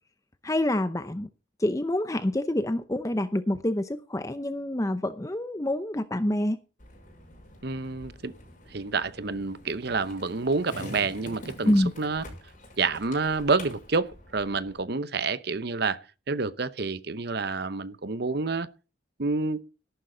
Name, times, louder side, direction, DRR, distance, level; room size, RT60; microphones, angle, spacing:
voice 1, 0.4-1.3 1.6-6.6 11.6-11.9, left 1 dB, 15° left, 0.6 m, -27 dB
Skateboard, 6.8-14.8, left 1 dB, 40° left, 6.0 m, -46 dB
voice 2, 7.6-8.3 8.7-12.2 12.8-16.0 16.3-18.7 19.2-19.6, right 4 dB, 55° right, 0.8 m, -28 dB
13.5 x 11.5 x 3.9 m
head